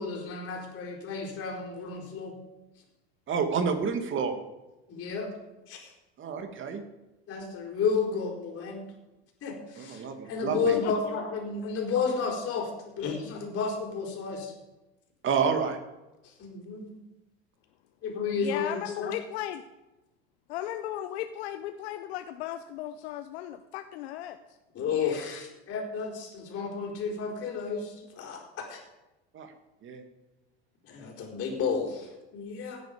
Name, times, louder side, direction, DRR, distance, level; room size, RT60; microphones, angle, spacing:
voice 1, 0.0-2.3 4.9-5.3 5.7-5.9 7.3-8.9 9.4-14.5 16.4-16.9 18.0-19.1 24.7-28.8 30.8-32.8, left 5 dB, 40° left, -3 dB, 4.7 m, -32 dB
voice 2, 3.3-4.4 6.2-6.8 9.8-10.7 15.2-15.8 29.3-29.5 29.8-30.0, right 6 dB, 40° right, 6 dB, 2.4 m, -29 dB
voice 3, 18.4-19.6 20.5-24.6, left 12 dB, 80° left, 9 dB, 0.9 m, -36 dB
17.0 x 9.7 x 5.2 m, 1.0 s
supercardioid pair, 105°, 32 cm